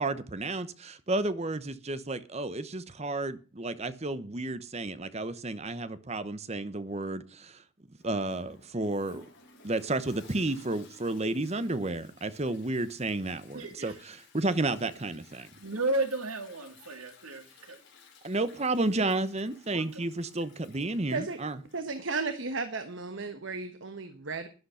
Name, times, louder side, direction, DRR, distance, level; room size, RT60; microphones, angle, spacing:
voice 1, 0.0-7.6 8.0-9.2 9.6-15.5 18.2-21.6, right 2 dB, 30° right, 0.9 m, -32 dB
Toilet flush, 8.0-22.6, left 4 dB, 55° left, 4.7 m, -58 dB
voice 2, 13.5-13.9 15.6-17.8 19.7-20.0, right 2 dB, 85° right, 2.4 m, -33 dB
voice 3, 21.7-24.5, right 4 dB, 55° right, 1.2 m, -34 dB
12.0 x 11.0 x 5.7 m
head